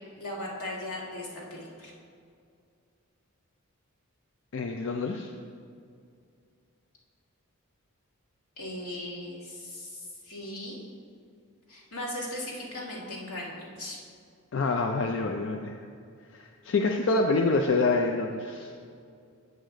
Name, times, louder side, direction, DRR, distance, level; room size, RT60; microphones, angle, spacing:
voice 1, 0.2-1.9 8.6-10.8 11.7-14.0, left 1 dB, 85° left, -5 dB, 2.0 m, -38 dB
voice 2, 4.5-5.3 14.5-15.7 16.3-18.7, left 3 dB, 60° left, 3 dB, 0.4 m, -26 dB
8.1 x 6.4 x 3.8 m, 2.3 s
head